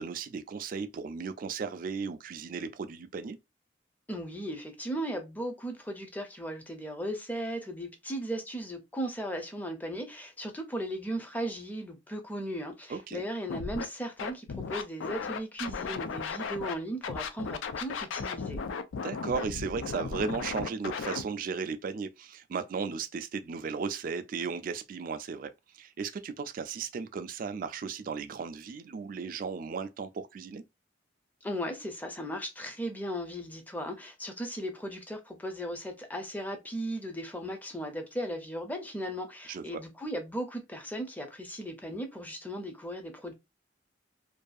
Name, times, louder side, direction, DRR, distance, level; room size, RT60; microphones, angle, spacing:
voice 1, 0.0-3.4 12.9-13.2 19.0-30.6 39.5-39.8, right 5 dB, 45° right, 0.3 m, -35 dB
voice 2, 4.1-18.6 31.4-43.3, equal, 10° left, 0.5 m, -37 dB
Scratching (performance technique), 13.5-13.8 14.2-16.7 17.0-21.2, left 5 dB, 90° left, 0.4 m, -35 dB
2.6 x 2.3 x 2.3 m
head